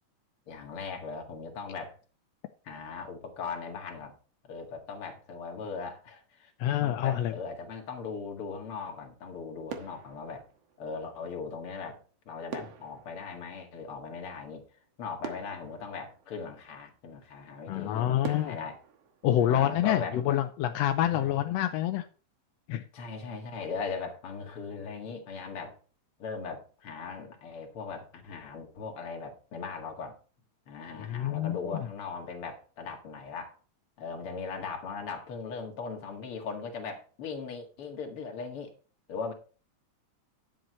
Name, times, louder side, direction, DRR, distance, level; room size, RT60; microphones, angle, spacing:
voice 1, 0.5-2.0 2.6-4.2 4.4-6.5 6.8-10.5 10.8-14.6 15.0-18.8 19.4-20.2 21.0-21.3 22.9-25.8 26.2-30.2 30.7-33.6 34.0-38.7 39.1-39.3, left 5 dB, 50° left, 2.6 m, -39 dB
voice 2, 6.6-7.3 17.7-18.6 19.2-22.0 22.7-22.8 31.1-31.9, left 12 dB, 75° left, 1.6 m, -27 dB
sound 1, 9.2-9.4 9.7-11.2 12.5-14.4 14.8-14.9 15.2-16.8 17.4-17.5 18.2-20.1 20.4-20.7, right 7 dB, 60° right, 2.2 m, -44 dB
10.5 x 7.8 x 4.3 m
omnidirectional pair, 3.4 m